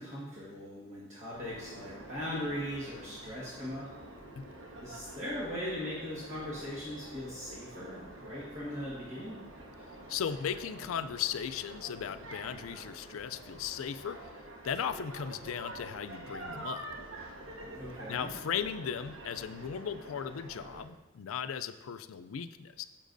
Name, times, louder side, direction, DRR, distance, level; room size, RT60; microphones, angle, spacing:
voice 1, 0.0-3.9 4.8-9.4 17.7-18.3, left 1 dB, 35° right, -7 dB, 1.6 m, -39 dB
sound 1, 1.3-20.8, right 1 dB, 80° right, 1.2 m, -47 dB
voice 2, 10.1-14.3 14.6-16.9 18.1-22.8, left 8 dB, 80° left, 11 dB, 0.4 m, -37 dB
10.0 x 7.3 x 2.6 m, 1.1 s
head